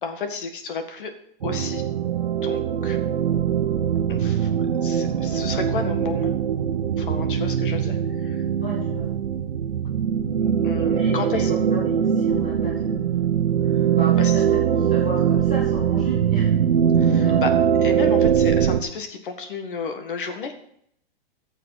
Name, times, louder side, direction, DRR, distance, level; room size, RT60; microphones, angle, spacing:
voice 1, 0.0-1.1 1.4-1.8 2.4-3.0 4.1-4.5 4.8-6.3 7.0-8.5 10.6-11.5 14.2-14.3 17.0-17.5 17.8-20.5, left 5 dB, 60° left, 7 dB, 1.8 m, -32 dB
sound 1, 1.4-18.8, right 8 dB, 80° right, 1.0 m, -22 dB
voice 2, 8.6-9.1 10.9-13.2 14.0-16.5 17.2-17.4 18.0-18.4, right 3 dB, 10° left, -5 dB, 0.3 m, -33 dB
14.0 x 6.7 x 4.1 m, 0.69 s
hypercardioid pair, 180°, 30 cm